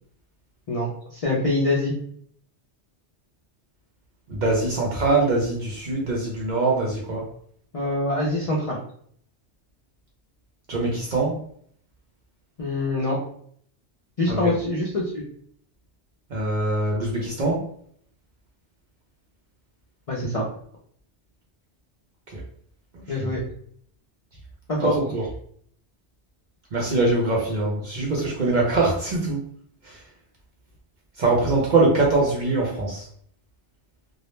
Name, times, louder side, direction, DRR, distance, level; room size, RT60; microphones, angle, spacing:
voice 1, 0.7-1.9 7.7-8.8 12.6-13.2 14.2-15.2 20.1-20.4 23.1-23.4 24.7-24.9, left 2 dB, 55° left, -4 dB, 0.4 m, -24 dB
voice 2, 4.3-7.3 10.7-11.4 14.3-14.5 16.3-17.6 22.3-22.4 22.9-23.3 24.8-25.2 26.7-29.4 29.8-30.0 31.2-33.1, right 2 dB, 55° right, -2 dB, 0.5 m, -23 dB
2.2 x 2.0 x 3.0 m, 0.62 s
omnidirectional pair, 1.2 m